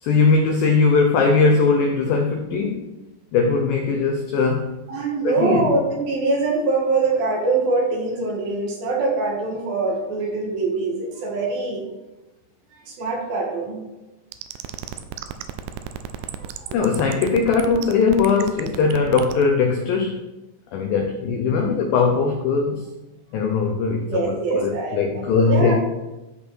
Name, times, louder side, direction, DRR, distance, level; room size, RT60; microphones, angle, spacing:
voice 1, 0.0-2.9 3.3-4.7 5.2-5.7 16.7-20.2 20.7-22.9 23.3-25.8, left 4 dB, 85° left, 4 dB, 2.0 m, -20 dB
voice 2, 4.9-11.8 12.8-13.8 16.2-16.8 21.5-21.7 24.1-25.8, right 3 dB, 65° right, -1 dB, 3.1 m, -24 dB
sound 1, 14.3-19.4, right 12 dB, 85° right, 2.7 m, -32 dB
12.5 x 5.4 x 4.6 m, 1.1 s
omnidirectional pair, 5.0 m